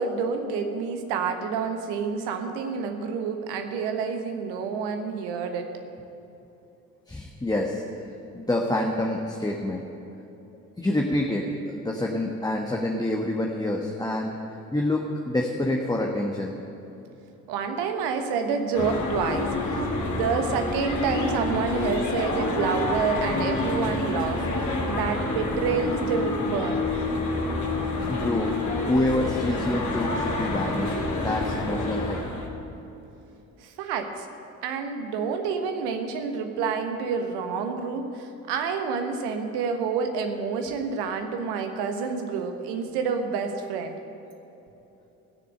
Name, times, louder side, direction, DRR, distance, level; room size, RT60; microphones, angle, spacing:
voice 1, 0.0-5.7 17.5-24.5 24.9-26.9 33.6-34.3 34.6-44.0, right 5 dB, 65° right, 6 dB, 1.3 m, -28 dB
voice 2, 7.1-7.8 8.3-9.8 10.8-16.5 28.1-28.5 28.8-30.9 31.2-32.2, left 1 dB, 10° left, 0 dB, 1.2 m, -27 dB
sound 1, 18.7-32.5, left 2 dB, 40° left, 2.7 m, -28 dB
16.0 x 6.8 x 7.6 m, 3.0 s
figure-of-eight pair, 45°, 43 cm